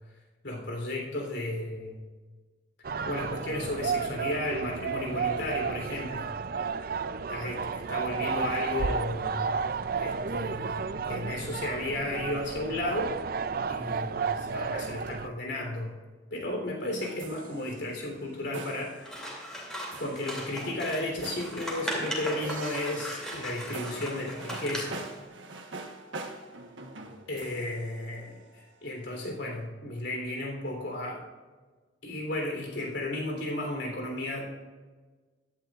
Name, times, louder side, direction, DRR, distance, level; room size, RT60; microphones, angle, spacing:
voice 1, 0.4-2.0 3.0-6.3 7.3-9.6 10.0-10.8 11.1-13.2 13.7-15.9 16.3-19.3 20.0-25.0 27.3-31.2 32.0-34.5, left 1 dB, 70° left, 1 dB, 3.4 m, -34 dB
sound 1, 2.8-15.3, right 5 dB, 50° right, 0.4 m, -32 dB
sound 2, 17.0-28.8, right 3 dB, 85° right, 1.2 m, -44 dB
Scissors, 19.0-25.1, equal, 5° left, 2.6 m, -38 dB
16.5 x 12.0 x 2.5 m, 1.3 s
head